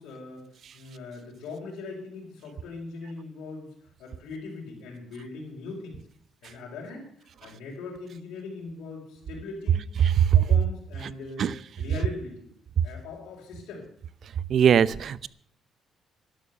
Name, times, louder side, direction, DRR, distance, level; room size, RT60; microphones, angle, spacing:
voice 1, 0.0-3.7 4.0-6.0 6.4-9.8 10.3-12.5 12.8-13.8, left 3 dB, 85° left, -4 dB, 4.7 m, -40 dB
voice 2, 14.5-15.3, right 8 dB, 60° right, 19 dB, 0.7 m, -20 dB
12.5 x 12.0 x 6.8 m, 0.62 s
cardioid pair, 90°, 0 cm